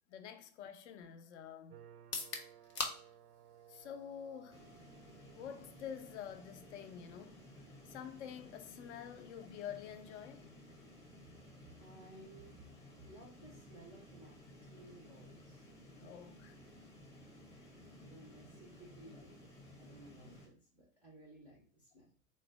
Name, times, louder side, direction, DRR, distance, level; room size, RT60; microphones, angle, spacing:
voice 1, 0.1-1.8 3.7-4.7 5.3-7.4 7.9-10.5 16.0-16.5 17.5-17.7, left 8 dB, 50° left, 0.5 m, -48 dB
sound 1, 1.7-17.0, right 10 dB, 70° right, 0.5 m, -65 dB
sound 2, 2.0-15.8, left 4 dB, 80° left, 0.9 m, -51 dB
sound 3, 4.5-20.5, left 1 dB, 15° left, 0.8 m, -57 dB
voice 2, 11.8-12.7 13.0-15.7 16.0-16.1 18.0-19.5 19.7-22.1, right 1 dB, 5° right, 0.4 m, -58 dB
3.7 x 2.1 x 3.3 m
figure-of-eight pair, 105°, 47 cm